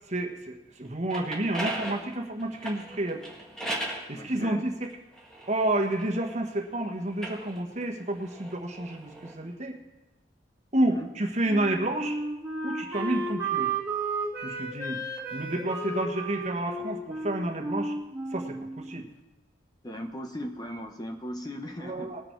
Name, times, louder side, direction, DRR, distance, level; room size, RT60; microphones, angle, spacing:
voice 1, 0.1-3.2 4.1-4.9 5.5-9.8 10.7-12.2 12.6-13.7 14.4-15.0 15.3-17.9 18.3-19.1 21.8-22.2, right 1 dB, 40° right, 2 dB, 1.4 m, -30 dB
sound 1, 0.9-4.1 4.8-6.5 7.1-9.4, right 1 dB, 5° left, 1.7 m, -38 dB
voice 2, 4.1-4.7 10.9-11.1 19.8-22.2, equal, 20° left, 4 dB, 0.9 m, -38 dB
Wind instrument woodwind instrument, 11.5-19.0, right 3 dB, 15° right, 2.0 m, -33 dB
20.5 x 6.9 x 4.6 m, 1.0 s
head